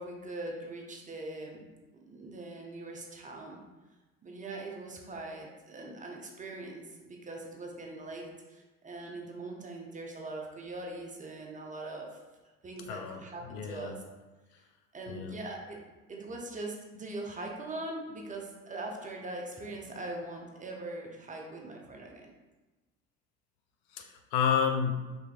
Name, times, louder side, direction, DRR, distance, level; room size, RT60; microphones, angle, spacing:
voice 1, 0.0-1.7 2.1-3.6 4.2-12.2 12.6-14.0 14.9-15.8 16.1-22.3, right 2 dB, 20° right, 0 dB, 0.8 m, -41 dB
voice 2, 12.9-13.2 13.5-13.9 15.1-15.4 23.9-25.1, left 7 dB, 50° left, 4 dB, 0.5 m, -30 dB
4.7 x 3.8 x 2.5 m, 1.2 s
figure-of-eight pair, 60°, 41 cm